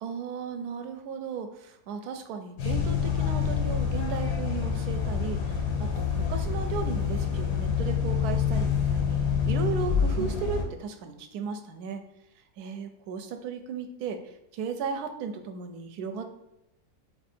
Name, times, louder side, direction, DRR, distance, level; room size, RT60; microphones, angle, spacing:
voice 1, 0.0-12.0 12.6-14.2 14.5-16.3, right 6 dB, 75° right, 7 dB, 1.1 m, -35 dB
sound 1, 2.6-10.6, left 6 dB, 90° left, 1.5 m, -27 dB
3.5 x 3.1 x 4.2 m, 0.88 s
omnidirectional pair, 1.7 m